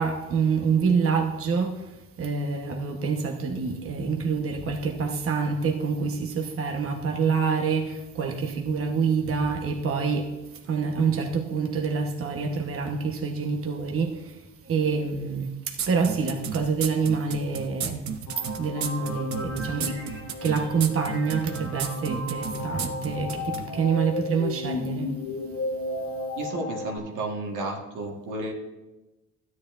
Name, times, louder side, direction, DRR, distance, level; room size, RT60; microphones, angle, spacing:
voice 1, 0.0-10.3 10.7-18.1 18.6-25.1, right 5 dB, 45° right, 1.1 m, -27 dB
sound 1, 15.8-23.7, right 8 dB, 65° right, 0.9 m, -32 dB
sound 2, 18.3-27.0, left 2 dB, 80° left, 1.9 m, -34 dB
voice 2, 26.4-28.5, right 2 dB, 85° right, 1.7 m, -32 dB
13.0 x 9.8 x 2.5 m
cardioid pair, 90°, 30 cm